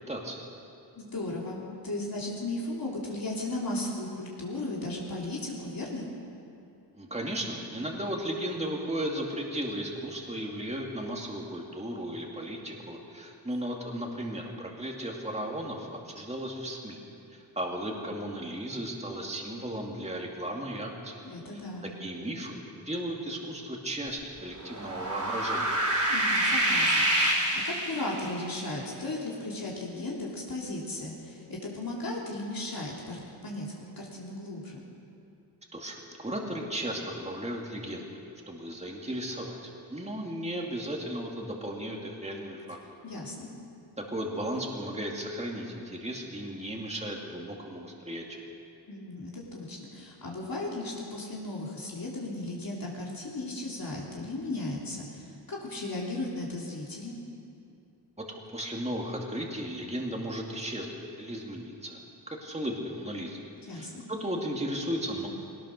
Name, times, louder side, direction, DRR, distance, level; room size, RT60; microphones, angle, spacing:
voice 1, 0.1-0.4 6.9-17.0 17.3-21.2 22.0-25.7 35.7-38.2 38.5-42.8 44.1-48.4 58.5-62.0 62.3-63.4 63.7-65.3, right 1 dB, 15° right, 0 dB, 2.4 m, -35 dB
voice 2, 0.9-6.1 21.2-21.9 26.1-34.8 43.0-43.5 48.9-57.2 63.7-64.0, left 2 dB, 50° left, -4 dB, 3.3 m, -36 dB
sound 1, 24.6-28.4, right 1 dB, 40° right, 4.0 m, -27 dB
21.5 x 19.0 x 6.5 m, 2.6 s
wide cardioid pair, 125°, 43 cm